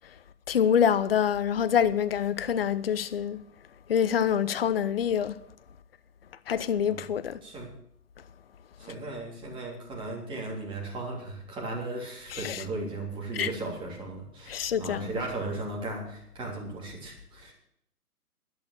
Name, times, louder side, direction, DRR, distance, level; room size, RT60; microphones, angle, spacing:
voice 1, 0.5-3.4 3.9-5.4 6.5-7.4 8.8-8.9 12.3-12.6 13.4-13.5 14.5-15.1, left 8 dB, 40° left, 0.7 m, -26 dB
voice 2, 7.4-7.7 8.8-17.5, right 2 dB, 10° right, 3.3 m, -36 dB
12.5 x 11.0 x 6.7 m
figure-of-eight pair, 135°, 46 cm